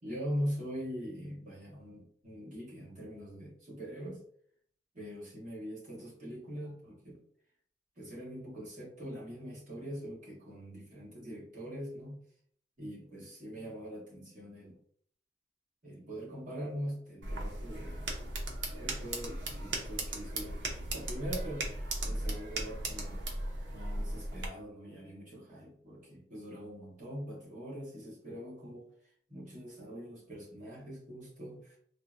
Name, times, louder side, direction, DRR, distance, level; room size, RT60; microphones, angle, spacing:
voice 1, 0.0-4.2 4.9-7.2 8.0-12.2 12.8-14.8 15.8-18.1 18.7-20.5 20.9-21.6 22.0-23.2 23.7-28.9 29.3-31.8, equal, 45° right, -6 dB, 1.3 m, -42 dB
sound 1, 17.2-24.5, right 1 dB, 85° right, 0.6 m, -37 dB
3.7 x 2.0 x 2.4 m, 0.62 s
head